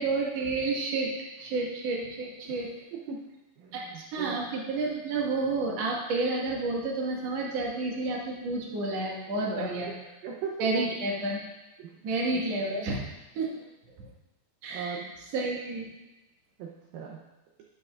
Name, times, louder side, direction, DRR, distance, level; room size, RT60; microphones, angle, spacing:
voice 1, 0.0-2.7 3.7-9.9 10.6-11.4 12.0-13.0 13.4-13.5 14.6-15.0 15.3-15.9, right 3 dB, 55° right, -3 dB, 2.1 m, -30 dB
voice 2, 3.6-4.5 9.5-9.9 10.2-10.7 11.8-12.4 14.0-14.1 14.7-15.1 16.6-17.2, right 6 dB, 75° right, 0 dB, 2.2 m, -39 dB
10.5 x 10.5 x 2.4 m, 1.0 s
omnidirectional pair, 4.7 m